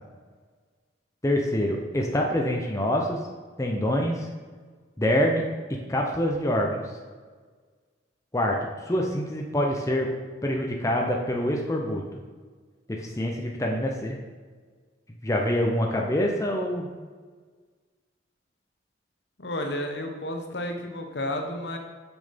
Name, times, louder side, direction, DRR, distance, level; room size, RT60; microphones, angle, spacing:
voice 1, 1.2-3.2 3.6-4.3 5.0-5.4 5.7-6.9 8.3-8.6 8.8-10.1 10.4-12.2 12.9-14.2 15.2-16.9, left 1 dB, 15° left, 0 dB, 0.8 m, -25 dB
voice 2, 19.4-21.8, left 1 dB, 65° left, 4 dB, 1.1 m, -31 dB
6.5 x 6.3 x 5.2 m, 1.5 s
head